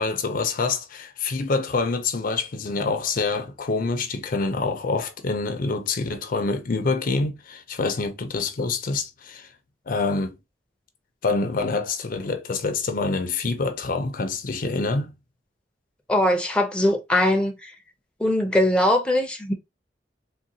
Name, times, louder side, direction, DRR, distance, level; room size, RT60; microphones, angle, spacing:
voice 1, 0.0-9.5 9.9-10.3 11.2-15.1, left 3 dB, 50° left, 0.5 m, -26 dB
voice 2, 16.1-17.7 18.2-19.5, left 1 dB, 5° left, 0.6 m, -21 dB
3.7 x 2.2 x 2.6 m
head